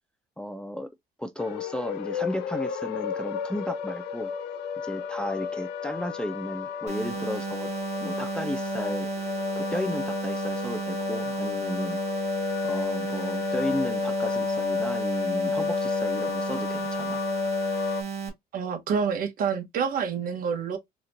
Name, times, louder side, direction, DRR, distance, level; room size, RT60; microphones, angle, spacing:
voice 1, 0.4-0.9 1.2-4.3 4.8-7.7 8.0-9.1 9.6-12.0 12.6-17.2, left 1 dB, 5° left, 0.3 m, -34 dB
sound 1, 1.4-18.0, left 7 dB, 85° left, 0.6 m, -31 dB
sound 2, 6.9-18.3, right 6 dB, 40° right, 2.1 m, -34 dB
voice 2, 18.5-20.8, right 6 dB, 55° right, 1.0 m, -28 dB
4.1 x 2.9 x 2.5 m
cardioid pair, 110°, 17 cm